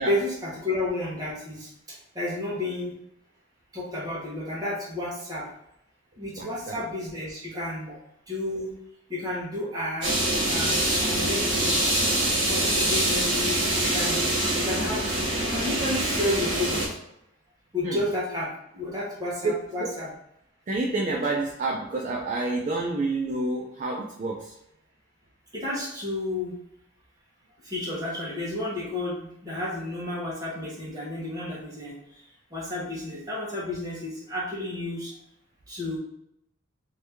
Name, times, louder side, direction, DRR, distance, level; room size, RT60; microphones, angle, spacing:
voice 1, 0.1-1.7 2.1-3.0 3.7-5.4 6.2-7.9 8.3-8.7 9.1-11.7 12.5-14.2 14.6-15.0 15.4-16.9 17.7-20.1 25.5-26.5 27.7-31.9 32.5-35.1 35.7-36.0, left 1 dB, 20° right, -6 dB, 1.1 m, -31 dB
voice 2, 6.4-6.8 17.8-18.0 19.4-19.5 19.8-19.9 20.7-24.5, right 2 dB, 40° right, -2 dB, 0.4 m, -28 dB
sound 1, 10.0-16.9, right 1 dB, 60° right, 1.4 m, -25 dB
2.9 x 2.7 x 3.4 m, 0.79 s
head